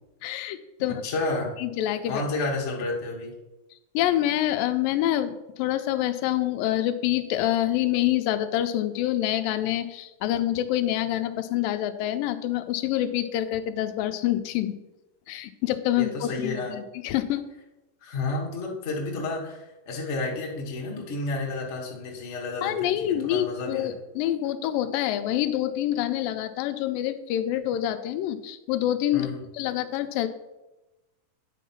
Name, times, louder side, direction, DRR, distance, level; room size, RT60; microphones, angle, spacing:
voice 1, 0.2-1.0 1.6-2.2 3.9-14.7 15.3-17.4 22.6-29.3 29.5-30.3, left 12 dB, 90° left, 9 dB, 2.3 m, -26 dB
voice 2, 0.9-1.5 2.1-3.3 16.0-16.7 18.0-23.9 29.1-29.4, left 3 dB, 55° left, -1 dB, 0.7 m, -31 dB
9.2 x 4.6 x 5.8 m, 1.0 s
omnidirectional pair, 4.0 m